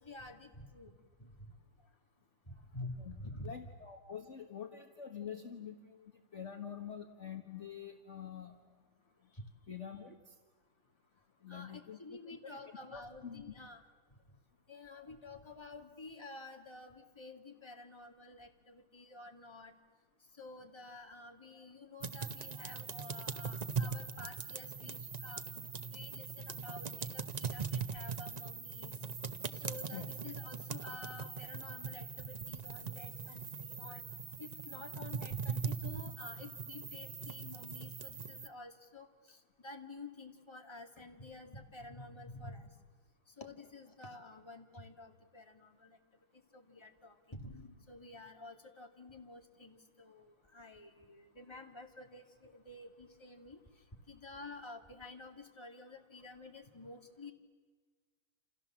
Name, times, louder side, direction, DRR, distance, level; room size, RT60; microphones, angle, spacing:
voice 1, 0.0-1.5 2.5-3.5 9.3-9.4 11.5-13.8 14.7-19.7 20.3-25.4 25.9-28.9 29.5-34.0 34.4-42.7 43.3-46.0 46.5-53.6 54.1-57.3, left 2 dB, 15° left, 3 dB, 2.1 m, -50 dB
voice 2, 3.4-8.6 9.7-10.4 11.4-12.0 12.4-12.6 12.9-13.4 29.9-30.1, left 8 dB, 40° left, 4 dB, 1.6 m, -46 dB
sound 1, 22.0-38.5, right 6 dB, 55° right, 0.4 m, -41 dB
29.0 x 28.0 x 7.4 m, 1.4 s
omnidirectional pair, 2.1 m